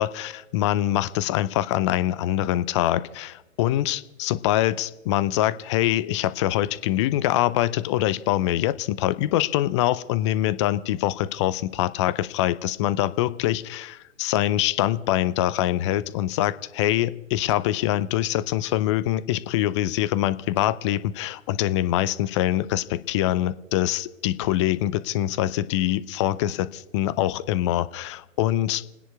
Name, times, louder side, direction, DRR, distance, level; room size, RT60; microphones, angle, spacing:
voice 1, 0.0-28.8, left 13 dB, 25° left, 15 dB, 0.5 m, -24 dB
29.0 x 10.0 x 4.7 m, 0.98 s
figure-of-eight pair, 125°, 39 cm